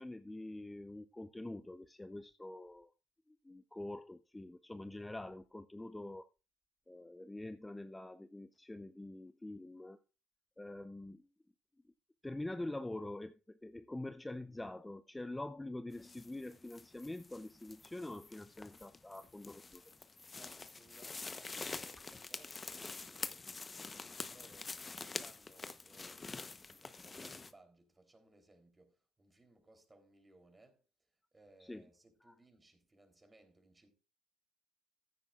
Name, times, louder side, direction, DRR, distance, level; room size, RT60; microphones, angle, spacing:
voice 1, 0.0-2.9 3.3-6.3 6.9-10.0 10.6-11.3 12.2-19.8 31.7-31.8 32.2-32.3, left 1 dB, 10° left, 0.6 m, -45 dB
sound 1, 15.9-27.5, left 4 dB, 30° left, 0.9 m, -47 dB
voice 2, 20.4-30.8 31.3-33.9, right 2 dB, 20° right, 3.5 m, -64 dB
15.0 x 9.3 x 2.5 m
hypercardioid pair, 65°, 0 cm